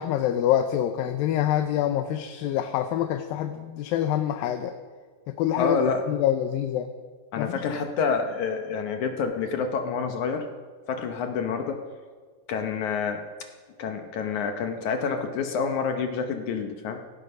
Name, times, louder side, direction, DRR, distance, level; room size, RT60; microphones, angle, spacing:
voice 1, 0.0-4.7 5.3-5.8 6.1-6.9 7.4-7.6, left 11 dB, 90° left, 8 dB, 2.5 m, -26 dB
voice 2, 5.6-6.1 7.3-10.5 10.9-11.8 12.5-13.5 13.8-17.0, left 5 dB, 70° left, 5 dB, 2.1 m, -28 dB
17.5 x 15.0 x 5.4 m, 1.6 s
omnidirectional pair, 4.0 m